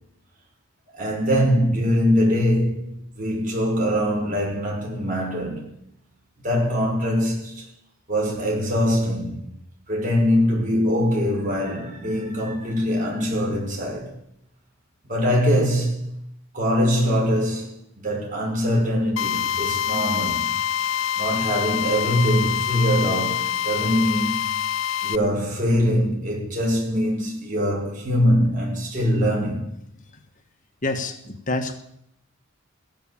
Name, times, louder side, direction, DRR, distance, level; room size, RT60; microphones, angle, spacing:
voice 1, 0.9-2.9 3.1-5.7 6.4-7.7 8.1-9.5 9.9-14.1 15.1-16.1 16.5-20.5 21.2-24.4 25.0-29.7, equal, 40° right, 5.8 m, -23 dB
Drill, 19.2-25.2, left 10 dB, 70° left, 0.6 m, -25 dB
voice 2, 30.8-31.8, left 2 dB, 40° left, 1.6 m, -27 dB
15.5 x 10.5 x 7.3 m
head